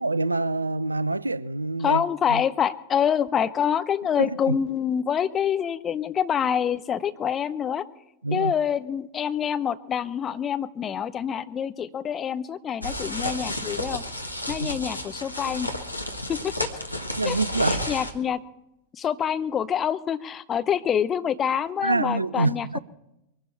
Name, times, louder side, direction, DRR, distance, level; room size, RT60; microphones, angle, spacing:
voice 1, 0.0-2.0 2.3-2.4 4.2-4.6 8.2-8.5 14.6-14.7 17.2-17.9 21.8-22.8, right 3 dB, 80° right, 0.4 m, -26 dB
voice 2, 1.8-7.8 8.3-14.0 14.5-15.7 16.3-16.7 17.2-18.4 18.9-22.8, left 8 dB, 25° left, 0.8 m, -26 dB
sound 1, 12.8-18.1, left 1 dB, 85° left, 1.4 m, -31 dB
23.0 x 12.5 x 4.3 m
figure-of-eight pair, 90°, 0 cm